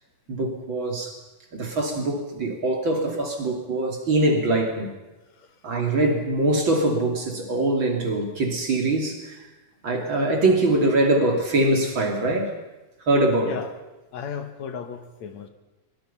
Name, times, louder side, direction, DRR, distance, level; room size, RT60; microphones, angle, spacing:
voice 1, 0.3-1.2 1.5-4.9 5.6-9.5 9.8-12.5 13.0-13.6, right 2 dB, 40° right, 2 dB, 3.5 m, -23 dB
voice 2, 14.1-15.5, left 7 dB, 70° left, 8 dB, 2.6 m, -35 dB
23.0 x 22.5 x 5.7 m, 1.1 s
omnidirectional pair, 3.3 m